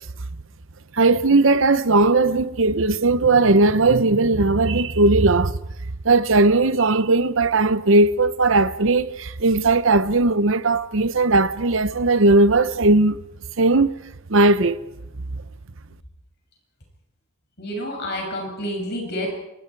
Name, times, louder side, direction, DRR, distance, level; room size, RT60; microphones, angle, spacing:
voice 1, 0.9-5.5 6.0-13.2 13.6-13.9 14.3-14.8, right 3 dB, 60° right, 0.8 m, -18 dB
voice 2, 17.6-19.3, equal, 50° left, 7.2 m, -29 dB
27.0 x 24.0 x 4.7 m
head